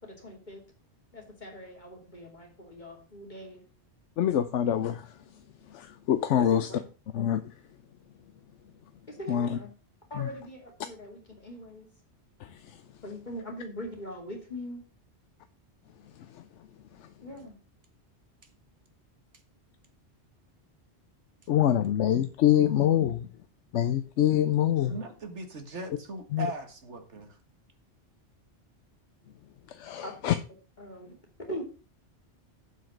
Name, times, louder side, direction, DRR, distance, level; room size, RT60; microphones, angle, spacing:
voice 1, 0.0-0.6 1.1-3.6 6.4-6.8 9.1-9.7 10.1-11.9 13.0-14.8 17.2-17.6 30.0-30.3 30.8-31.2 31.5-31.6, equal, 40° left, 2.8 m, -41 dB
voice 2, 4.2-5.1 5.7-6.7 7.1-7.5 9.3-9.6 10.1-10.3 12.4-12.8 16.3-16.4 17.0-17.1 21.5-23.3 23.7-24.9 26.3-26.5 29.7-30.4, left 11 dB, 85° left, 1.0 m, -25 dB
voice 3, 24.9-27.4, right 2 dB, 80° right, 2.0 m, -39 dB
7.7 x 6.0 x 6.5 m
omnidirectional pair, 1.2 m